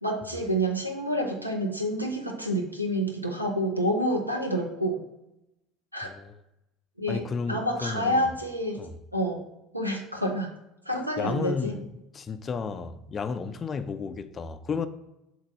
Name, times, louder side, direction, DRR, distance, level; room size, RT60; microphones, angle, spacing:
voice 1, 0.0-5.0 5.9-6.1 7.0-7.2 7.5-8.9 9.1-9.4 9.7-10.5 10.9-11.7, equal, 90° right, 0.8 m, -28 dB
voice 2, 6.0-6.4 7.1-8.3 8.7-9.0 11.2-14.9, left 5 dB, 30° left, 0.5 m, -33 dB
7.5 x 2.6 x 5.4 m
figure-of-eight pair, 70°, 0 cm